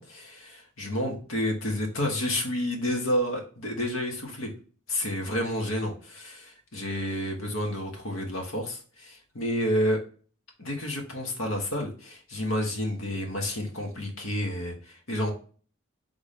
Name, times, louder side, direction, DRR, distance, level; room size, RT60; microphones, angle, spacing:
voice 1, 0.0-4.5 4.9-10.0 10.6-15.3, left 1 dB, 70° left, 2 dB, 1.4 m, -30 dB
3.8 x 3.6 x 3.5 m, 0.39 s
head